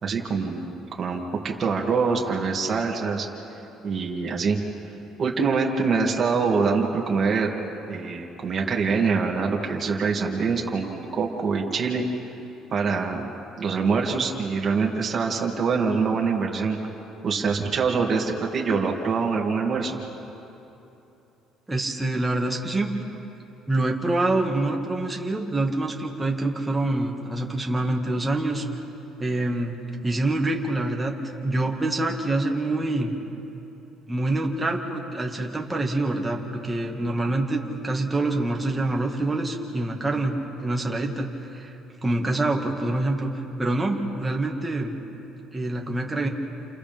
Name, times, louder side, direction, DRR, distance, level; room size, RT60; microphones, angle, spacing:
voice 1, 0.0-3.3 3.8-4.6 5.2-7.5 7.9-12.0 12.7-13.3 13.6-16.8 17.2-20.0, right 5 dB, 35° right, -1 dB, 2.5 m, -24 dB
voice 2, 21.7-22.9 23.7-28.7 29.2-29.8 30.0-33.1 34.1-41.7 42.0-44.9 45.5-46.3, right 2 dB, 10° right, 0 dB, 1.9 m, -26 dB
30.0 x 28.5 x 3.6 m, 2.9 s
cardioid pair, 135°, 0 cm